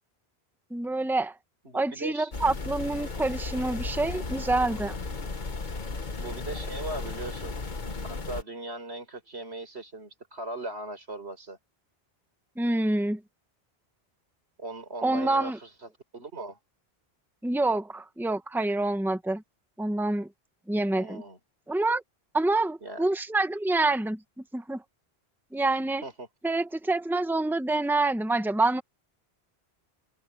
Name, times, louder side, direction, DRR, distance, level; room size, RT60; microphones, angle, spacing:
voice 1, 0.7-1.3 1.7-4.9 12.6-13.2 15.0-15.6 17.4-19.4 19.8-20.3 20.7-21.2 21.7-22.0 22.3-24.8 25.5-26.0 26.4-28.8, right 2 dB, ahead, 1.3 m, -27 dB
voice 2, 1.6-2.3 6.2-7.5 8.0-11.6 14.6-16.6 20.9-21.4 22.8-23.1 26.0-26.3, right 2 dB, 90° right, 5.2 m, -39 dB
sound 1, 2.3-8.4, left 3 dB, 45° left, 1.5 m, -35 dB
omnidirectional pair, 1.1 m